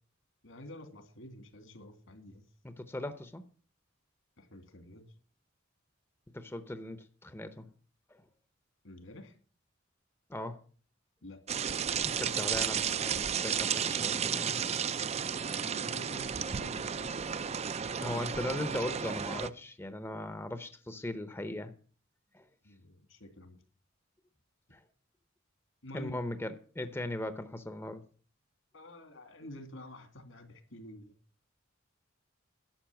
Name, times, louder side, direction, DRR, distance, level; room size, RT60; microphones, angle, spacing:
voice 1, 0.4-2.4 4.4-5.1 8.8-9.3 11.2-11.4 15.6-17.2 22.6-23.6 25.8-26.2 28.7-31.1, left 1 dB, 75° left, 8 dB, 2.5 m, -49 dB
voice 2, 2.6-3.4 6.3-7.7 8.1-8.2 10.3-10.6 12.0-14.6 18.0-21.7 22.3-22.4 24.7-24.8 25.9-28.0, left 1 dB, 10° left, 10 dB, 0.7 m, -38 dB
sound 1, 11.5-19.5, right 7 dB, 35° right, 0.5 m, -33 dB
12.0 x 6.7 x 9.0 m, 0.43 s
head